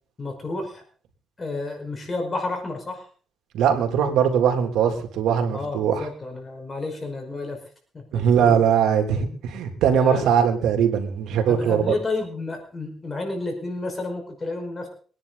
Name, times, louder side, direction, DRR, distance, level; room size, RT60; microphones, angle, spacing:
voice 1, 0.2-0.8 1.4-3.1 5.5-7.6 7.9-8.6 9.2-9.4 9.9-10.2 11.5-14.9, left 3 dB, 30° left, 3 dB, 5.3 m, -31 dB
voice 2, 3.5-6.1 8.1-11.9, right 8 dB, 85° right, 4 dB, 3.1 m, -21 dB
24.0 x 10.5 x 4.1 m, 0.42 s
cardioid pair, 90°, 0 cm